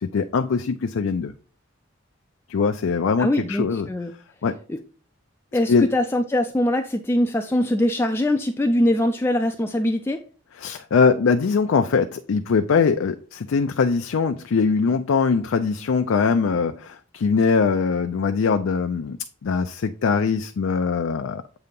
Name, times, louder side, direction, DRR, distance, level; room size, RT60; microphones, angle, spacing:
voice 1, 0.0-1.3 2.5-3.9 4.4-4.6 5.7-5.9 10.6-19.2 19.4-21.4, left 5 dB, 85° left, 0.4 m, -22 dB
voice 2, 3.2-4.1 4.7-4.8 5.5-10.2, left 1 dB, 10° left, 0.3 m, -22 dB
7.9 x 2.8 x 5.2 m
head